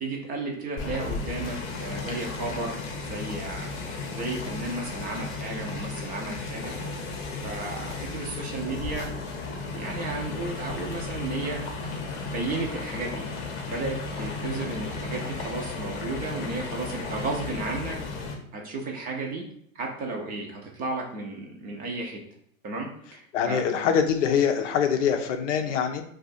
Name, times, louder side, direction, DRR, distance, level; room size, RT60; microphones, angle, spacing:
voice 1, 0.0-2.8 3.1-3.8 4.1-6.7 7.4-9.1 9.7-11.6 12.3-13.2 13.7-18.0 18.5-19.4 19.7-22.2 22.6-23.6, right 3 dB, 20° right, 0 dB, 0.5 m, -33 dB
sound 1, 0.8-18.3, left 3 dB, 30° left, 0.7 m, -34 dB
voice 2, 23.3-26.0, left 7 dB, 60° left, 7 dB, 0.6 m, -24 dB
2.5 x 2.3 x 4.0 m, 0.67 s
hypercardioid pair, 110°, 41 cm